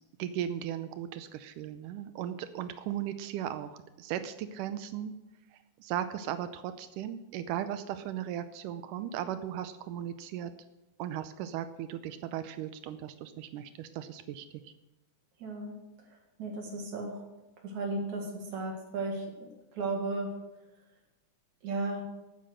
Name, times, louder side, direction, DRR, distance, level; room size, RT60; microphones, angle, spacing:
voice 1, 0.2-5.2 5.5-10.5 11.0-14.7, right 10 dB, 85° right, 10 dB, 2.3 m, -37 dB
voice 2, 15.4-15.8 16.1-17.2 17.6-20.4 21.6-22.0, right 2 dB, 65° right, 1 dB, 3.3 m, -35 dB
14.0 x 9.3 x 6.6 m, 1.0 s
omnidirectional pair, 3.7 m